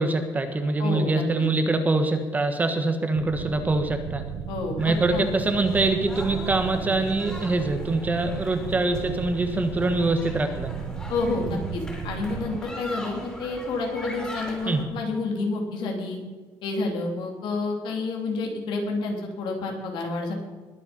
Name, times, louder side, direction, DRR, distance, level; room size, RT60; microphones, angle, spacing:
voice 1, 0.0-4.2 4.8-10.7 14.7-14.8, right 2 dB, 20° right, 7 dB, 1.4 m, -24 dB
voice 2, 0.8-1.4 4.5-5.3 11.1-16.2 16.6-20.3, left 3 dB, 70° left, 1 dB, 3.5 m, -29 dB
sound 1, 3.1-12.6, right 8 dB, 70° right, 1.0 m, -35 dB
sound 2, 4.8-14.8, equal, 10° left, 3.5 m, -40 dB
20.5 x 8.2 x 5.4 m, 1.3 s
cardioid pair, 140°, 8 cm